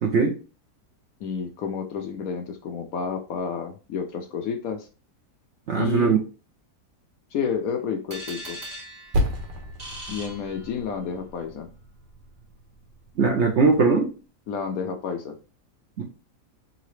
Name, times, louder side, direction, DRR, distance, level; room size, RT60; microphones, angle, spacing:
voice 1, 0.0-0.4 5.7-6.2 13.2-14.1 16.0-16.1, right 4 dB, 60° right, 0 dB, 0.7 m, -20 dB
voice 2, 1.2-4.9 5.7-6.2 7.3-8.6 10.1-11.7 14.5-15.4, left 6 dB, 65° left, 5 dB, 0.9 m, -30 dB
sound 1, 8.1-11.1, equal, 25° right, 1.2 m, -40 dB
Percussion, 9.1-14.0, left 1 dB, 85° right, 1.6 m, -33 dB
3.8 x 3.1 x 3.1 m, 0.34 s
omnidirectional pair, 1.8 m